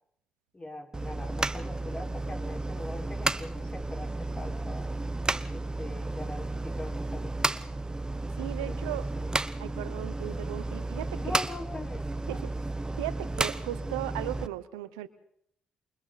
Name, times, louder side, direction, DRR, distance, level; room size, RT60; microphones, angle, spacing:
voice 1, 0.5-4.9 5.5-7.7 8.6-9.4 9.6-10.0 11.1-12.5, left 1 dB, 30° left, 2 dB, 5.1 m, -42 dB
sound 1, 0.9-14.5, right 2 dB, 20° right, 1.1 m, -33 dB
voice 2, 8.4-9.1 9.6-11.2 12.3-12.5 13.0-15.1, right 15 dB, 90° right, 14 dB, 0.9 m, -36 dB
28.5 x 24.5 x 4.2 m, 0.67 s
hypercardioid pair, 45°, 4 cm